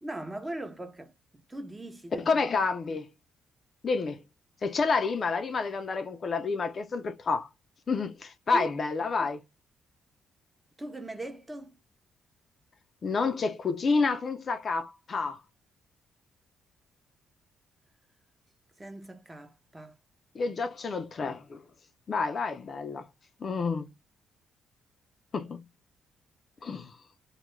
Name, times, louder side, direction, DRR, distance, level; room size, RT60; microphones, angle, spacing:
voice 1, 0.0-1.1 1.5-2.3 8.5-8.7 10.8-11.8 18.8-19.9, right 1 dB, 15° right, 0.6 m, -39 dB
voice 2, 2.2-3.1 3.8-4.2 4.6-7.5 7.9-9.4 13.0-15.4 20.3-21.6 22.1-23.1 23.4-23.9 25.3-25.6 26.6-27.0, left 4 dB, 45° left, 0.4 m, -29 dB
2.2 x 2.1 x 3.0 m
cardioid pair, 90°, 0 cm